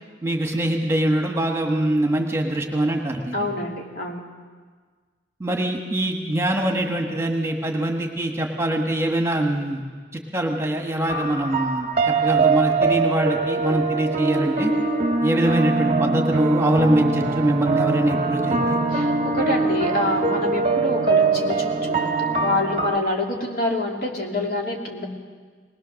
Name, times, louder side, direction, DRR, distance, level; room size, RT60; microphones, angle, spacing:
voice 1, 0.2-3.5 5.4-9.8 10.3-14.7 15.2-18.8, right 1 dB, 15° right, 2 dB, 1.5 m, -23 dB
voice 2, 3.3-4.2 18.9-25.1, left 2 dB, 50° left, 0 dB, 2.8 m, -26 dB
sound 1, 11.1-23.0, right 4 dB, 35° right, 1.0 m, -22 dB
20.5 x 20.0 x 6.5 m, 1.5 s
head